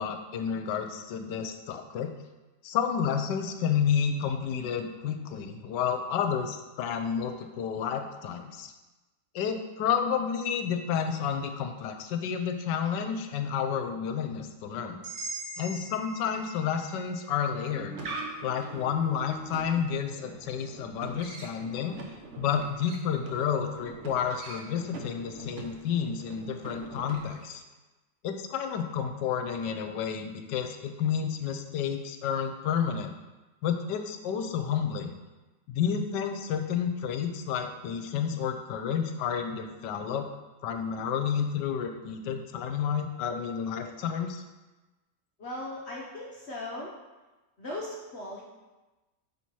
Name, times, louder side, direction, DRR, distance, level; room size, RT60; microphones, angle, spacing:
voice 1, 0.0-2.1 2.6-8.7 9.3-15.0 15.6-18.0 18.4-22.0 22.4-27.6 28.2-33.1 33.6-35.1 35.7-40.3 40.6-44.4, left 7 dB, 80° left, 6 dB, 1.2 m, -30 dB
sound 1, 15.0-19.1, right 2 dB, 80° right, 2.8 m, -43 dB
sound 2, 17.6-27.6, right 3 dB, 55° right, 1.0 m, -43 dB
voice 2, 45.4-46.9 47.6-48.4, left 1 dB, 50° left, -3 dB, 0.8 m, -38 dB
5.7 x 4.3 x 4.6 m, 1.1 s
omnidirectional pair, 1.9 m